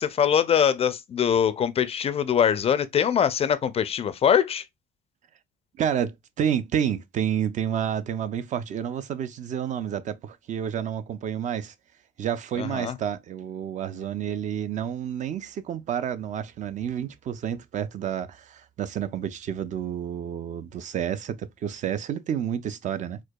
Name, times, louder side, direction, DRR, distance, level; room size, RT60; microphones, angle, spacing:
voice 1, 0.0-4.6 12.6-13.0, left 8 dB, 35° left, 0.4 m, -23 dB
voice 2, 5.8-11.7 12.2-23.2, right 9 dB, 45° right, 0.4 m, -29 dB
4.4 x 2.3 x 2.2 m
cardioid pair, 110°, 17 cm